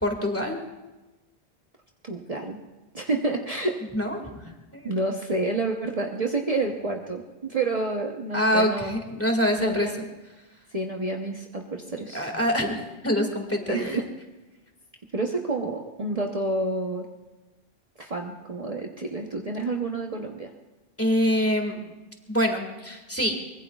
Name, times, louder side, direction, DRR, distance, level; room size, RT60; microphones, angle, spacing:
voice 1, 0.0-0.6 3.9-4.2 4.7-5.0 8.3-9.9 12.1-13.9 21.0-21.8 22.3-23.4, equal, 15° left, 3 dB, 2.0 m, -25 dB
voice 2, 2.0-2.6 2.9-3.8 4.8-8.9 9.6-9.9 10.7-12.3 13.7-14.1 15.1-17.1 18.0-20.5, right 2 dB, 40° right, 0 dB, 1.0 m, -29 dB
24.0 x 21.0 x 2.4 m, 1.1 s
omnidirectional pair, 1.0 m